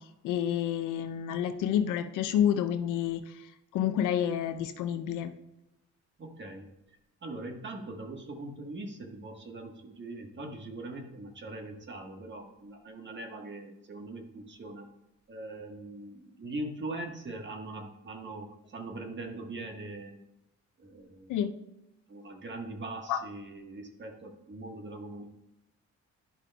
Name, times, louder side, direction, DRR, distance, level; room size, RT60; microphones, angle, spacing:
voice 1, 0.2-3.3 3.7-5.3 21.3-21.5 23.1-23.2, left 9 dB, 85° left, 8 dB, 0.6 m, -29 dB
voice 2, 6.2-6.7 7.2-14.9 15.3-20.2 20.8-21.3 22.1-25.3, right 2 dB, 40° right, 3 dB, 1.4 m, -41 dB
11.0 x 5.0 x 2.2 m, 0.88 s
cardioid pair, 90°, 30 cm